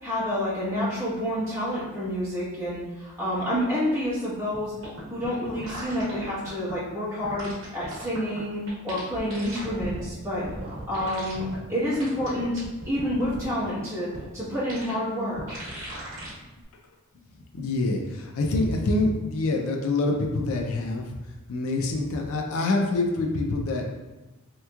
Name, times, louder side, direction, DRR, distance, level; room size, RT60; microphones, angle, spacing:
voice 1, 0.0-4.7 5.1-10.4 10.9-14.1 14.3-15.6, equal, 15° right, -10 dB, 1.2 m, -28 dB
sound 1, 4.5-4.6 4.8-6.7 7.2-8.4 8.7-10.0 10.3-11.6 11.9-13.5 14.1-14.2 14.7-14.9 15.4-16.3 16.6-16.7, right 1 dB, 60° right, 1.0 m, -37 dB
voice 2, 17.5-21.2 21.5-24.0, left 2 dB, 70° left, 2 dB, 0.4 m, -26 dB
3.4 x 3.0 x 2.3 m, 1.1 s
head